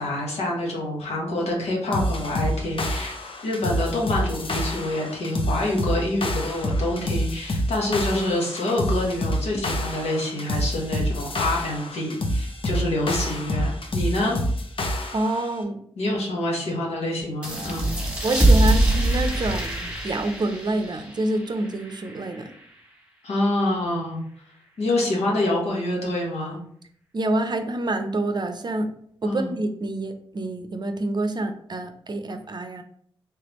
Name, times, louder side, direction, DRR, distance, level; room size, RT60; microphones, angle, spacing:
voice 1, 0.0-3.2 3.4-14.4 16.0-17.9 23.2-24.2 24.8-26.6 29.2-29.5, left 1 dB, 90° left, -2 dB, 1.0 m, -26 dB
sound 1, 1.9-15.5, equal, 60° left, 0.7 m, -27 dB
voice 2, 15.1-15.8 18.2-22.5 27.1-28.9 29.2-32.8, right 2 dB, 45° right, 7 dB, 0.5 m, -27 dB
sound 2, 17.4-22.6, right 1 dB, 10° right, 1.4 m, -23 dB
3.3 x 3.3 x 3.0 m, 0.65 s
cardioid pair, 50°, 10 cm